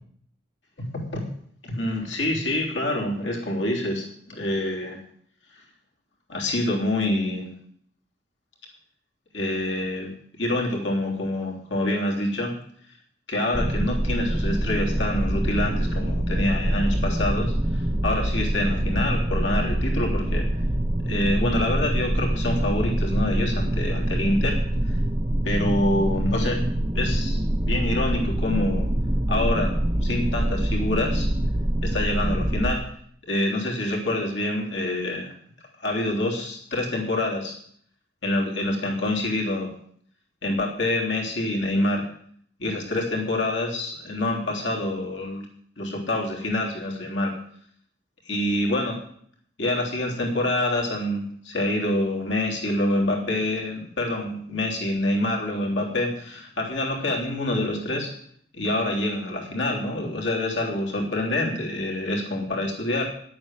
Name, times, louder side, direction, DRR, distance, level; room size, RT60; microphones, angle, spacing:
voice 1, 1.6-5.0 6.3-7.5 9.3-10.1 10.4-12.5 13.3-20.4 21.0-24.6 25.4-26.7 26.9-28.9 29.3-29.7 30.0-31.3 31.8-32.8 33.3-35.3 35.8-37.6 38.2-39.7 40.4-42.0 42.6-45.4 45.8-47.3 48.2-49.0 49.6-58.1 58.5-63.1, left 1 dB, 70° left, -1 dB, 3.4 m, -26 dB
sound 1, 13.5-32.8, right 1 dB, 20° right, 0.7 m, -25 dB
10.5 x 8.6 x 7.4 m, 0.63 s
head